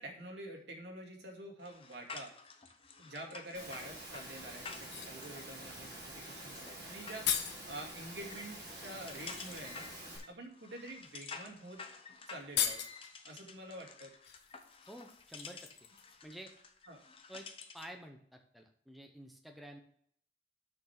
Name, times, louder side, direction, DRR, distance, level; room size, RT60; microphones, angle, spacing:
voice 1, 0.0-2.3 3.0-9.9 10.3-11.8 12.3-12.8 13.2-14.1 16.9-17.0, right 1 dB, 75° right, 0 dB, 2.2 m, -47 dB
sound 1, 1.6-18.0, left 5 dB, 30° left, 0.8 m, -51 dB
Engine / Mechanisms, 3.5-10.2, right 1 dB, 20° right, 3.0 m, -48 dB
sound 2, 4.8-5.2 6.7-6.8 7.0-7.7 9.1-9.2 9.8-10.0 10.9-11.0 11.4-11.5 11.8-11.9 12.4-13.1 14.2-16.3 16.6-16.7, left 9 dB, 70° left, 1.0 m, -38 dB
voice 2, 14.9-15.6 16.2-16.5 17.3-17.5 17.7-19.8, right 1 dB, ahead, 3 dB, 0.7 m, -50 dB
6.7 x 6.2 x 5.8 m, 0.63 s
head